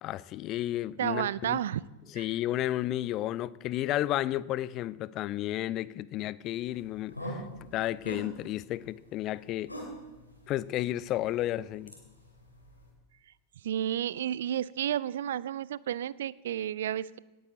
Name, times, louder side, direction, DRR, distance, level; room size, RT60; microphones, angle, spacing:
voice 1, 0.0-1.6 2.1-7.4 7.7-9.7 10.5-11.9, left 14 dB, 35° left, 0.3 m, -32 dB
voice 2, 1.0-1.8 2.2-2.3 13.6-17.2, right 11 dB, 60° right, 0.3 m, -31 dB
sound 1, 6.6-12.9, equal, 85° left, 2.8 m, -45 dB
17.5 x 8.9 x 3.8 m
figure-of-eight pair, 90°, 0 cm